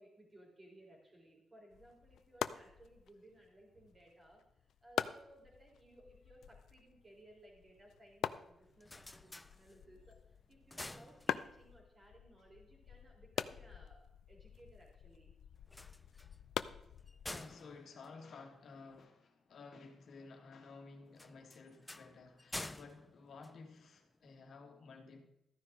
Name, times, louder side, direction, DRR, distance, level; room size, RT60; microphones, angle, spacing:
voice 1, 0.0-15.3, right 1 dB, 25° right, 3.8 m, -61 dB
sound 1, 1.7-17.6, left 9 dB, 75° left, 0.4 m, -45 dB
sound 2, 8.6-10.1 10.5-11.8 15.6-19.0 21.1-24.2, left 2 dB, 10° left, 0.4 m, -50 dB
voice 2, 17.3-25.3, left 4 dB, 60° left, 1.8 m, -54 dB
13.5 x 9.8 x 3.7 m
cardioid pair, 115°, 0 cm